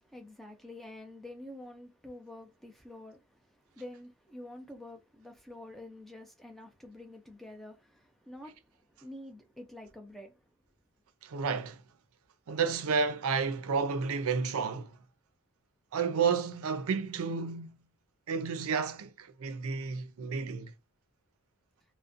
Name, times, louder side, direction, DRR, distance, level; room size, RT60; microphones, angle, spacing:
voice 1, 0.0-10.3, left 1 dB, ahead, 0.4 m, -48 dB
voice 2, 11.2-11.8 12.5-15.0 15.9-17.8 18.3-20.7, right 5 dB, 75° right, 0.5 m, -31 dB
2.5 x 2.1 x 2.5 m
head